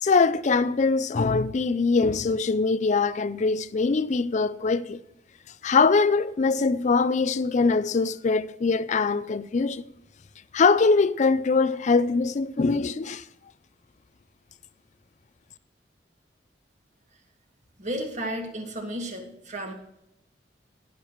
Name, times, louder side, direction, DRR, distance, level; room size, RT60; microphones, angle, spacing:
voice 1, 0.0-5.0 5.6-9.8 10.5-13.2, left 4 dB, 40° left, 0.4 m, -22 dB
voice 2, 17.8-19.7, right 1 dB, 40° right, 2.0 m, -33 dB
19.5 x 6.8 x 3.0 m
head